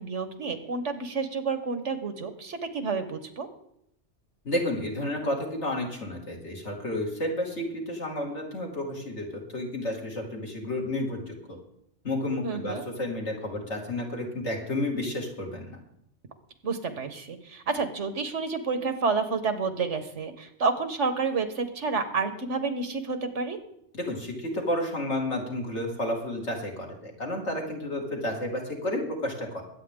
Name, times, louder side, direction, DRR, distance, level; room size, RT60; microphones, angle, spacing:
voice 1, 0.0-3.5 12.4-12.8 16.6-23.6, right 4 dB, 80° right, 9 dB, 1.6 m, -29 dB
voice 2, 4.4-9.3 9.5-11.6 12.0-15.8 23.9-29.6, left 1 dB, 70° left, 0 dB, 2.9 m, -31 dB
22.0 x 8.8 x 3.8 m, 0.75 s
omnidirectional pair, 1.2 m